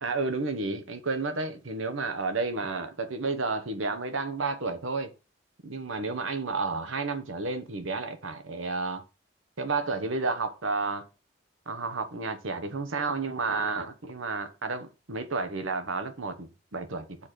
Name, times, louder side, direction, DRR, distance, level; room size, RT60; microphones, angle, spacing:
voice 1, 0.0-5.1 5.6-9.0 9.6-11.0 11.7-17.2, right 3 dB, 80° right, 1.2 m, -31 dB
5.8 x 4.3 x 6.3 m
head